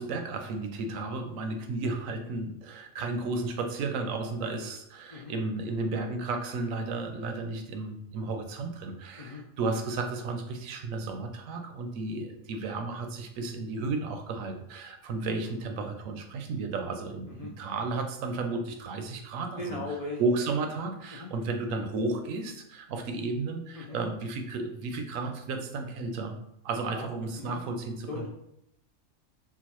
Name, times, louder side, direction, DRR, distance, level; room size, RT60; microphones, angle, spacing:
voice 1, 0.0-19.8 20.2-26.4 26.6-28.3, right 3 dB, 80° right, 5 dB, 1.0 m, -33 dB
voice 2, 19.6-20.2 21.1-21.3 23.7-24.0 26.9-27.1 27.3-27.6 28.1-28.3, left 2 dB, 75° left, -3 dB, 0.3 m, -38 dB
3.8 x 2.3 x 3.0 m, 0.78 s
omnidirectional pair, 1.4 m